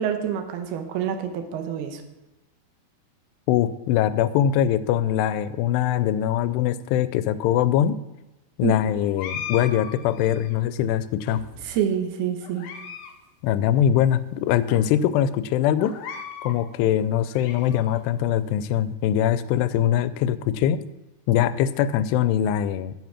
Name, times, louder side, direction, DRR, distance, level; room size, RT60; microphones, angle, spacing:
voice 1, 0.0-2.0 8.6-8.8 11.6-12.7, right 8 dB, 80° right, 6 dB, 2.9 m, -27 dB
voice 2, 3.5-8.0 8.6-11.5 13.4-16.0 16.4-20.8 21.3-22.9, left 10 dB, 90° left, 15 dB, 2.6 m, -22 dB
sound 1, 9.2-10.6 11.3-11.9 12.4-13.1 13.4-13.5 14.2-14.3 14.7-14.8 15.8-16.6 17.1-18.0, left 7 dB, 70° left, 2.3 m, -38 dB
9.3 x 8.0 x 5.7 m, 1.0 s
omnidirectional pair, 4.7 m